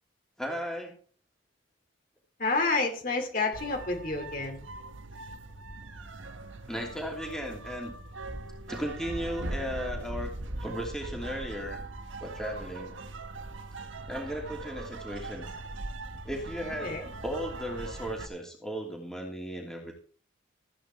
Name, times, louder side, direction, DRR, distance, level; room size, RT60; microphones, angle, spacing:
voice 1, 0.4-1.0 6.7-7.9 8.7-10.3 10.6-11.8 12.2-12.9 14.1-15.5 16.2-17.0 17.2-19.9, equal, 5° left, 0 dB, 2.8 m, -36 dB
voice 2, 2.4-4.6 16.8-17.1, left 3 dB, 45° left, 3 dB, 2.5 m, -29 dB
sound 1, 3.5-18.3, right 2 dB, 80° right, 1.4 m, -40 dB
14.5 x 9.2 x 4.4 m, 0.43 s
head